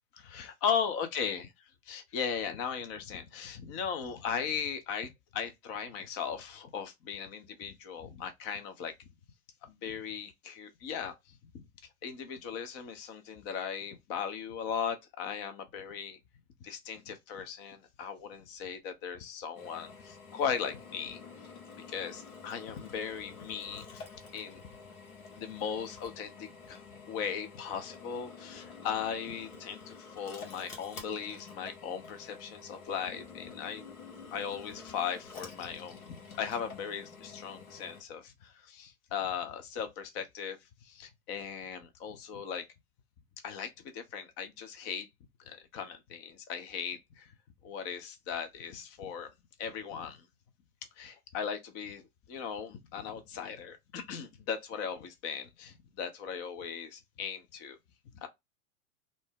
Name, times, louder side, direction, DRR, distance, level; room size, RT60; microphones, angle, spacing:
voice 1, 0.1-1.5 1.8-9.1 9.6-11.7 12.0-16.2 16.6-21.2 21.9-24.0 24.3-24.6 25.4-33.8 34.3-42.7 43.4-45.1 45.4-47.3 47.6-49.3 49.6-50.3 51.0-57.8 58.2-58.3, left 7 dB, 35° left, 0.6 m, -38 dB
Drill, 19.6-38.0, left 4 dB, 90° left, 1.0 m, -49 dB
2.6 x 2.1 x 3.5 m
hypercardioid pair, 105°, 42 cm